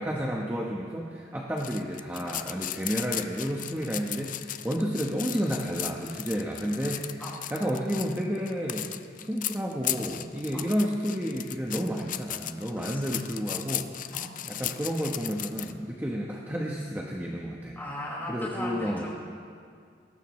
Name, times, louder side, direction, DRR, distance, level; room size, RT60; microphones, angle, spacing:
voice 1, 0.0-7.2 7.5-13.9 14.5-17.8 18.3-19.1, equal, 10° right, -2 dB, 1.0 m, -31 dB
sound 1, 1.6-15.7, left 12 dB, 45° left, 0.5 m, -36 dB
voice 2, 12.8-13.2 14.1-14.3 17.7-19.1, left 1 dB, 10° left, -6 dB, 5.0 m, -37 dB
21.5 x 18.0 x 3.2 m, 2.2 s
head